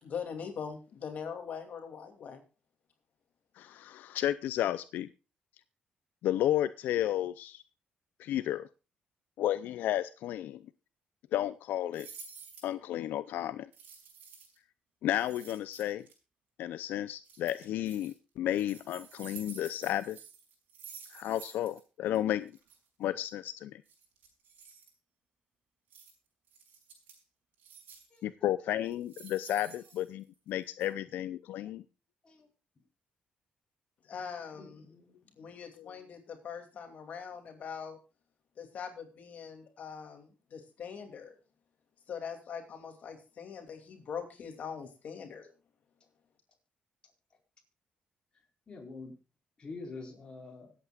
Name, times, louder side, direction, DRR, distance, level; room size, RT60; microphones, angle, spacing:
voice 1, 0.0-2.4 34.0-34.9 35.4-38.0 38.6-41.4 42.1-45.5, left 6 dB, 55° left, 5 dB, 2.7 m, -42 dB
voice 2, 3.6-5.1 6.2-7.6 8.2-8.7 9.4-10.6 11.3-12.1 12.6-13.7 15.0-16.1 16.6-20.2 21.1-22.5 23.0-23.8 28.2-31.8 35.8-36.0, left 12 dB, 90° left, 13 dB, 0.5 m, -32 dB
sound 1, 11.9-12.7 13.7-14.6 15.1-16.1 17.2-18.1 18.5-21.8 22.1-22.2 22.5-22.8 23.9-24.9 25.9-26.1 26.5-27.2 27.6-28.2 28.8-30.5 30.8-30.9, right 6 dB, 85° right, 5.3 m, -51 dB
voice 3, 34.5-35.5 48.7-49.1 49.6-50.7, left 3 dB, 30° left, 1 dB, 4.7 m, -46 dB
25.0 x 8.5 x 2.4 m, 0.31 s
cardioid pair, 125°, 3 cm